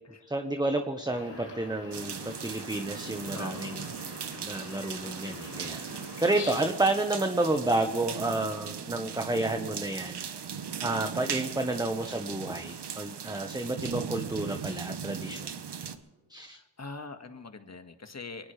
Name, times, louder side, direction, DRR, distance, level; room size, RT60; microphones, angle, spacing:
voice 1, 0.3-3.8 4.4-5.9 6.2-10.2 10.8-15.5 16.3-16.6, right 2 dB, 10° right, 5 dB, 1.3 m, -30 dB
sound 1, 1.1-6.7, left 4 dB, 70° left, 3.6 m, -45 dB
sound 2, 1.9-16.0, right 7 dB, 65° right, 1.3 m, -38 dB
voice 2, 3.3-3.8 16.5-18.5, left 3 dB, 35° left, 7 dB, 1.8 m, -43 dB
22.0 x 19.0 x 3.4 m, 1.4 s
cardioid pair, 50°, 44 cm